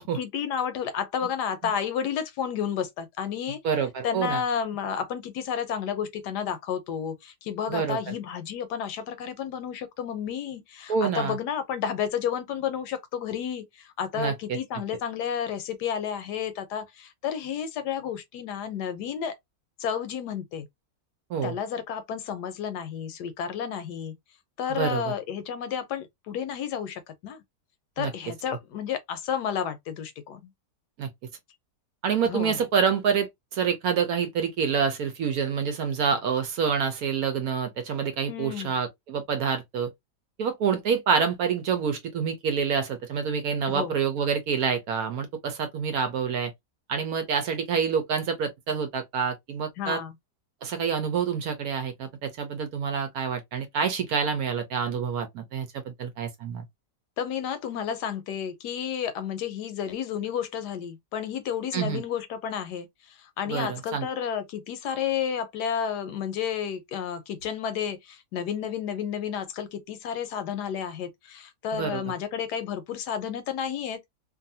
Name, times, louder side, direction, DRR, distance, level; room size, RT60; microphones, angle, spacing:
voice 1, 0.2-3.6 4.0-19.3 19.8-20.7 21.4-24.1 24.6-27.4 28.0-30.5 32.2-32.7 38.3-38.8 43.7-43.9 49.8-50.1 57.2-74.0, left 8 dB, 75° left, 1.1 m, -31 dB
voice 2, 3.6-4.4 7.7-8.1 10.9-11.4 14.1-14.6 21.3-21.5 24.7-25.0 28.0-28.1 31.0-31.1 32.0-39.9 40.4-46.5 46.9-50.0 50.6-56.6 61.7-62.0 63.5-64.1 71.7-72.0, right 6 dB, 70° right, 1.0 m, -27 dB
2.6 x 2.5 x 2.6 m
omnidirectional pair, 1.8 m